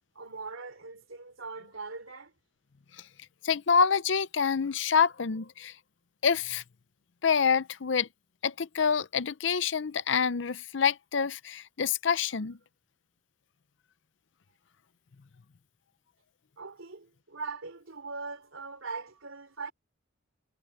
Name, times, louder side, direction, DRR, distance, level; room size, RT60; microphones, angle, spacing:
voice 1, 0.2-2.3 16.6-19.7, right 4 dB, 90° right, 3.7 m, -41 dB
voice 2, 3.4-5.7 6.2-6.6 7.2-8.1 8.4-12.6, left 6 dB, 70° left, 0.6 m, -27 dB
head